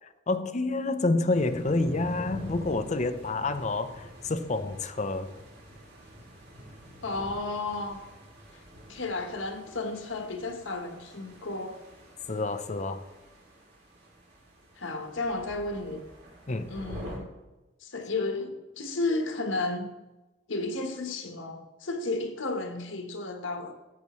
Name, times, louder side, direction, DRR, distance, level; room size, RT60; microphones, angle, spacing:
voice 1, 0.3-5.3 12.3-13.0 16.5-16.7, left 2 dB, 40° left, 0.6 m, -28 dB
sound 1, 1.3-17.2, equal, 55° right, 3.3 m, -46 dB
voice 2, 7.0-8.0 8.9-11.8 14.7-16.0 16.7-17.3 17.8-19.9 20.5-23.8, left 2 dB, 85° left, 1.2 m, -33 dB
14.0 x 8.3 x 3.1 m
head